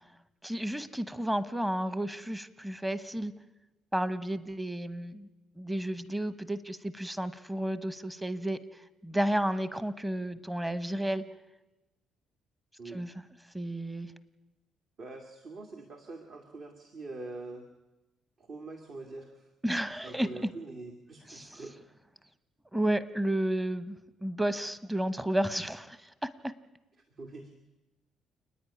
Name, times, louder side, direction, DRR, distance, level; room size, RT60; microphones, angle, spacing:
voice 1, 0.4-3.4 3.9-5.3 5.6-11.2 12.8-13.2 13.5-14.1 19.6-20.6 21.3-21.7 22.7-26.5, right 1 dB, 10° right, 14 dB, 1.1 m, -32 dB
voice 2, 15.0-17.6 18.5-19.3 20.0-21.8 27.2-27.5, right 2 dB, 50° right, 3 dB, 2.1 m, -44 dB
29.0 x 9.9 x 9.9 m, 1.0 s
cardioid pair, 110°, 0 cm